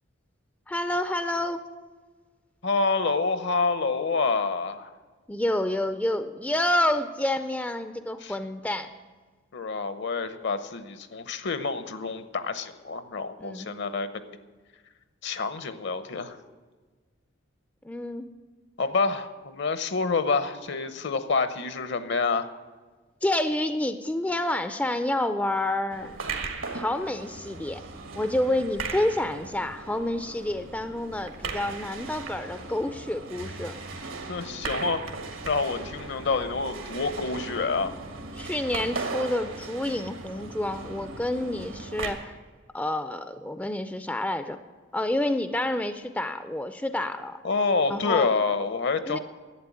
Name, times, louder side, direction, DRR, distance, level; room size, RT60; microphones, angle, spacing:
voice 1, 0.7-1.6 5.3-8.9 13.4-13.7 17.8-18.3 23.2-26.1 26.7-27.8 28.1-33.8 38.4-42.3 42.7-44.6 44.9-47.4 47.9-48.3 49.0-49.2, left 1 dB, 10° left, 10 dB, 0.4 m, -28 dB
voice 2, 2.6-4.9 8.2-8.3 9.5-14.2 15.2-16.4 18.8-22.5 34.3-35.0 35.4-37.9 47.4-49.2, left 4 dB, 60° left, 11 dB, 0.8 m, -27 dB
sound 1, 25.9-42.1, right 3 dB, 85° right, 1.6 m, -37 dB
11.0 x 8.6 x 8.5 m, 1.4 s
head